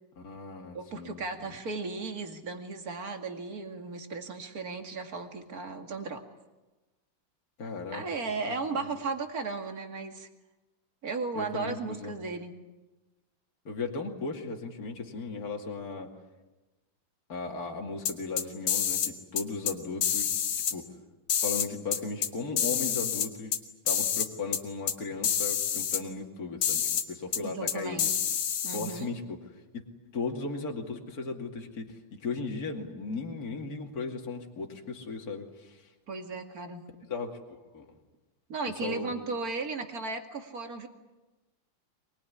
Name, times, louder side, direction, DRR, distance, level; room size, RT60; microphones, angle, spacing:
voice 1, 0.2-1.6 7.6-8.0 8.5-8.9 11.3-12.2 13.6-16.1 17.3-20.3 20.7-20.9 21.4-23.5 23.8-28.1 28.7-29.2 29.7-29.8 30.1-35.9 37.1-38.0 38.8-39.1, left 4 dB, 40° left, 1 dB, 2.9 m, -36 dB
voice 2, 0.7-6.2 7.9-10.3 11.0-12.5 27.4-28.2 28.6-29.1 36.1-36.8 38.5-40.9, right 4 dB, 45° right, 5 dB, 2.6 m, -35 dB
sound 1, 18.1-19.1 19.4-19.7 20.0-20.7 21.3-22.3 22.6-23.6 23.9-24.3 24.5-24.6 24.9-25.0 25.2-26.0 26.6-27.0 27.3-27.4 27.7-29.0, left 8 dB, 80° left, 2.3 m, -28 dB
24.0 x 21.0 x 10.0 m, 1.1 s
omnidirectional pair, 2.4 m